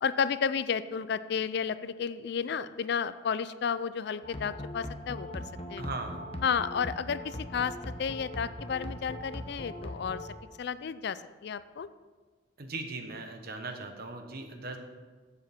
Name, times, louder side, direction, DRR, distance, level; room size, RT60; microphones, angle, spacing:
voice 1, 0.0-5.4 5.7-5.8 6.4-11.9, left 6 dB, 60° left, 15 dB, 0.4 m, -32 dB
sound 1, 4.2-10.3, left 1 dB, 30° left, 0.9 m, -40 dB
voice 2, 5.8-6.3 12.6-14.8, right 3 dB, 55° right, 5 dB, 1.3 m, -38 dB
14.5 x 7.6 x 4.4 m, 1.4 s
head